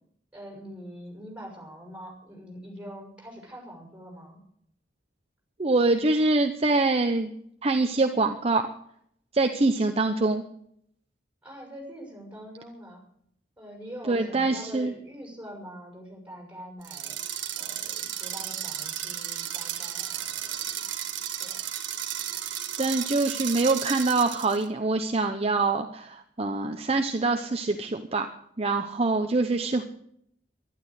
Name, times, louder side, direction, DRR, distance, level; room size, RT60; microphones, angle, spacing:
voice 1, 0.3-4.4 11.4-13.0 13.6-17.2 17.6-20.6 21.4-21.6, equal, 5° right, -1 dB, 6.0 m, -44 dB
voice 2, 5.6-7.3 7.6-8.7 9.3-10.4 14.1-14.9 22.8-28.3 28.6-29.8, right 3 dB, 35° right, 6 dB, 0.8 m, -24 dB
sound 1, 16.8-24.6, right 10 dB, 85° right, 1.9 m, -34 dB
12.0 x 12.0 x 8.1 m, 0.69 s
head